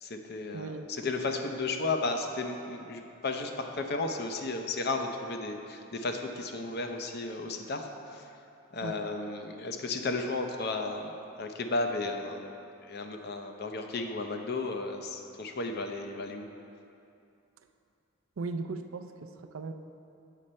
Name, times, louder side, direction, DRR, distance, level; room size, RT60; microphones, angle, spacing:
voice 1, 0.0-8.3 8.7-12.5 12.8-16.5, left 3 dB, 50° left, 4 dB, 0.6 m, -34 dB
voice 2, 0.5-0.9 8.8-8.9 18.4-19.7, right 3 dB, 70° right, 7 dB, 0.4 m, -37 dB
8.3 x 6.3 x 4.3 m, 2.6 s
head